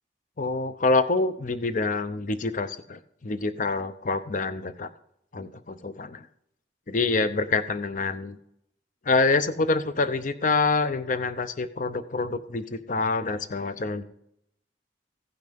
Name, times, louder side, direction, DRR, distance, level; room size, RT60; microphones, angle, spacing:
voice 1, 0.4-4.9 5.3-6.3 6.9-8.4 9.1-14.0, left 3 dB, 45° left, 11 dB, 0.7 m, -26 dB
15.5 x 6.0 x 5.2 m, 0.75 s
head